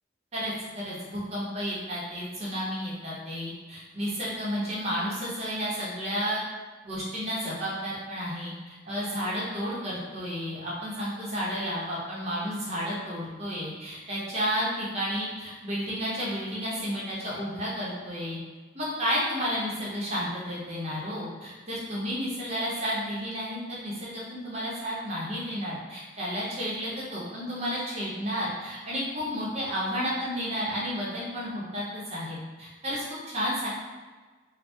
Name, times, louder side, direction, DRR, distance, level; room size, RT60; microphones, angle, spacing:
voice 1, 0.3-6.4 6.8-18.4 18.7-33.7, equal, 35° right, -7 dB, 0.9 m, -32 dB
3.4 x 2.2 x 4.3 m, 1.4 s
head